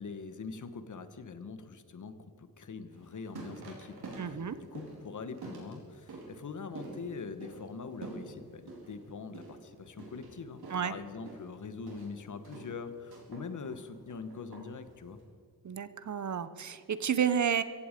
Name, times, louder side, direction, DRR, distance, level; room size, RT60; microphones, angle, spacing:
voice 1, 0.0-15.2, left 5 dB, 50° left, 11 dB, 1.3 m, -43 dB
sound 1, 2.9-15.2, right 3 dB, 85° right, 4.3 m, -48 dB
voice 2, 4.2-4.6 10.7-10.9 15.6-17.6, right 8 dB, 50° right, 13 dB, 0.9 m, -31 dB
16.0 x 15.5 x 5.2 m, 2.2 s
wide cardioid pair, 105°, 38 cm